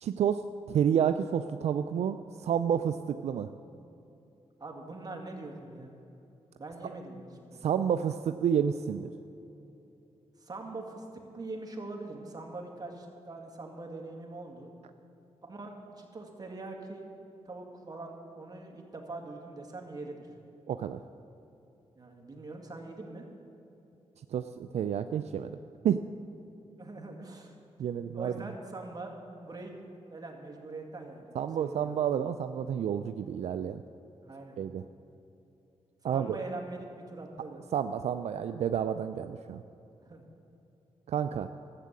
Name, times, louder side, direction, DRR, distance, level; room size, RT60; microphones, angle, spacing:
voice 1, 0.0-3.5 7.6-9.1 20.7-21.0 24.3-25.5 25.8-26.1 27.8-28.3 31.3-33.8 34.6-34.8 36.0-36.4 37.7-39.6 41.1-41.5, right 8 dB, 80° right, 9 dB, 0.4 m, -30 dB
voice 2, 4.6-5.9 6.6-7.7 10.4-14.7 15.4-17.1 17.5-20.3 22.0-23.3 26.8-27.5 28.1-29.1 29.4-29.8 30.1-31.9 34.2-34.6 36.0-37.6 40.0-40.2, right 2 dB, 35° right, 1 dB, 2.1 m, -43 dB
13.0 x 7.5 x 8.2 m, 2.9 s
cardioid pair, 70°, 11 cm